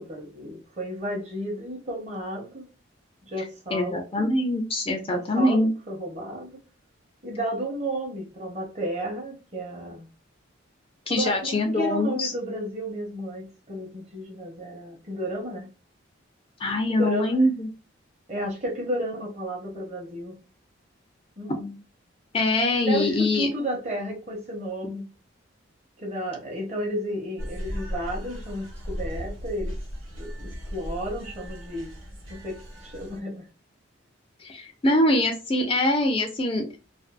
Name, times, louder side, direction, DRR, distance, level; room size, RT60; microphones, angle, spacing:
voice 1, 0.0-2.7 3.2-4.3 5.1-6.6 7.2-10.1 11.1-15.7 16.9-17.4 18.3-20.4 21.4-21.8 22.9-25.1 26.0-29.8 30.1-31.9 32.3-33.5, equal, 35° right, 0.8 m, -32 dB
voice 2, 3.7-5.7 11.1-12.3 16.6-17.7 22.3-23.5 34.4-36.7, left 1 dB, 25° left, 0.3 m, -23 dB
sound 1, 27.4-33.2, equal, 90° right, 1.0 m, -36 dB
2.5 x 2.3 x 2.3 m
head